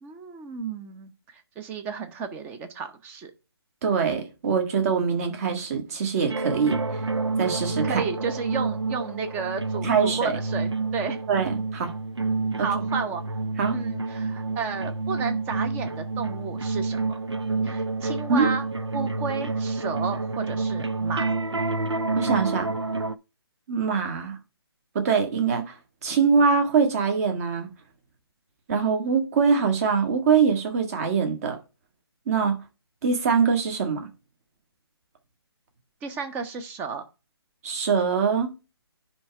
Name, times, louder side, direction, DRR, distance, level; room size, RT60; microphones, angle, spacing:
voice 1, 0.0-3.3 7.8-11.2 12.6-13.2 13.7-17.2 17.6-18.7 18.9-21.3 36.0-37.0, right 5 dB, 15° right, 0.8 m, -33 dB
voice 2, 3.8-7.0 7.4-8.0 9.8-10.4 11.3-11.9 12.6-12.7 13.6-13.8 18.3-18.5 22.1-22.7 23.7-24.4 25.0-25.7 26.0-27.7 28.7-31.6 32.3-32.6 33.0-34.1 37.6-38.5, right 5 dB, 35° right, 1.8 m, -23 dB
sound 1, 6.3-23.1, right 3 dB, 85° right, 0.8 m, -28 dB
10.5 x 3.5 x 4.7 m
figure-of-eight pair, 145°, 14 cm